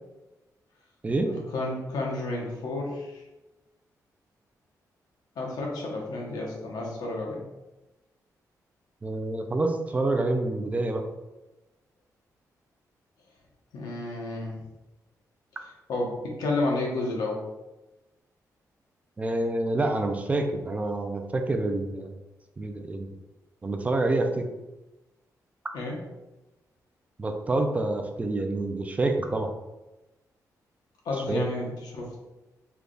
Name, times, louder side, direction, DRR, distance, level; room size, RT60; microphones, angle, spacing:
voice 1, 1.2-3.0 5.4-7.4 13.7-14.6 15.9-17.4 25.7-26.0 31.0-32.2, left 2 dB, 85° left, -1 dB, 1.0 m, -31 dB
voice 2, 9.0-11.0 19.2-22.1 22.6-23.1 23.6-24.4 27.2-29.5 31.3-31.4, right 2 dB, 20° right, 5 dB, 0.3 m, -27 dB
3.3 x 2.3 x 3.8 m, 1.0 s
wide cardioid pair, 140°, 7 cm